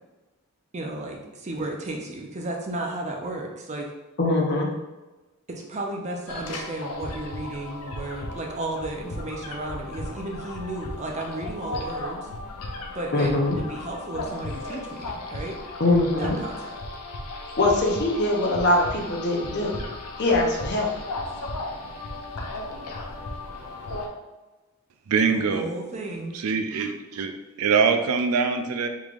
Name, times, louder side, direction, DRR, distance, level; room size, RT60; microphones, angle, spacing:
voice 1, 0.7-3.9 5.5-12.3 12.9-15.6 16.2-16.8 25.5-26.4, right 2 dB, 30° right, 0 dB, 0.5 m, -33 dB
voice 2, 4.2-4.7 13.1-13.6 15.8-16.4 17.6-19.7 20.2-20.9, left 2 dB, 50° left, 0 dB, 0.7 m, -22 dB
sound 1, 6.3-24.1, left 2 dB, 90° left, 0.6 m, -36 dB
voice 3, 25.1-25.6 26.3-27.3 27.6-28.9, right 5 dB, 80° right, 6 dB, 0.4 m, -23 dB
3.7 x 3.2 x 2.4 m, 1.1 s
head